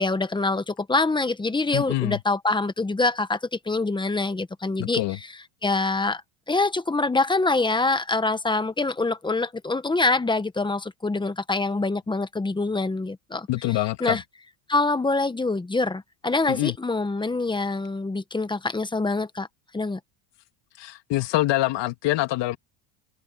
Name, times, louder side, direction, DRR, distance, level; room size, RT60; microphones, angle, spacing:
voice 1, 0.0-5.0 5.6-6.2 6.5-14.2 14.7-19.5 19.7-20.0, left 3 dB, 10° left, 1.1 m, -25 dB
voice 2, 1.7-2.2 4.8-5.2 13.5-14.2 16.5-16.8 20.8-22.6, left 17 dB, 55° left, 2.4 m, -25 dB
cardioid pair, 135°, 49 cm